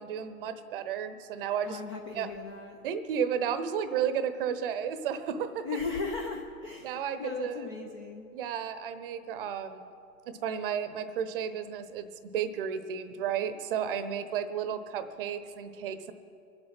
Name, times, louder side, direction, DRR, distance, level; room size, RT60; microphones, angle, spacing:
voice 1, 0.0-1.8 2.1-2.3 2.8-5.7 6.8-7.5 8.3-9.9 10.3-12.1 12.3-16.1, right 8 dB, 35° right, 11 dB, 0.8 m, -33 dB
voice 2, 1.6-2.8 5.6-8.3, left 4 dB, 20° left, 1 dB, 0.5 m, -37 dB
23.5 x 8.0 x 5.8 m, 2.6 s
hypercardioid pair, 140°, 48 cm